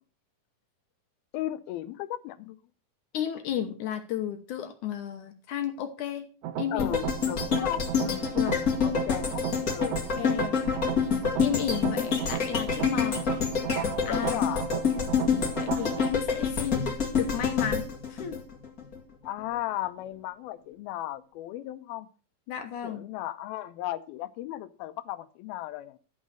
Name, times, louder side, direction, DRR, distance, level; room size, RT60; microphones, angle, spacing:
voice 1, 1.3-2.6 6.7-8.4 8.8-10.0 14.1-15.2 19.2-22.1 22.8-26.0, left 14 dB, 85° left, 2.6 m, -36 dB
voice 2, 3.1-6.3 6.6-6.9 8.3-8.5 10.2-10.6 11.4-13.3 14.1-14.4 15.6-18.4 22.5-23.1, left 9 dB, 65° left, 2.2 m, -33 dB
sound 1, 6.4-16.1, right 10 dB, 75° right, 1.4 m, -35 dB
sound 2, 6.8-19.0 19.4-19.5, left 6 dB, 30° left, 2.0 m, -27 dB
12.5 x 5.5 x 6.3 m
omnidirectional pair, 4.2 m